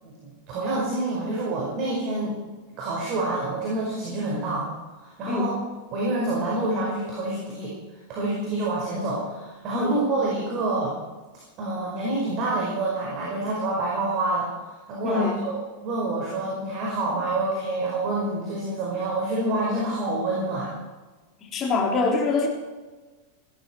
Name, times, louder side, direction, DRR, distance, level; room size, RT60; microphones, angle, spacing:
voice 1, 0.0-2.4 2.8-4.6 4.9-5.5 5.9-7.7 8.1-10.9 11.6-20.7, right 2 dB, 40° right, -3 dB, 5.2 m, -27 dB
voice 2, 15.0-15.4 21.5-22.5, left 4 dB, 30° left, 1 dB, 3.6 m, -24 dB
18.5 x 14.0 x 4.6 m, 1.3 s
figure-of-eight pair, 90°, 0 cm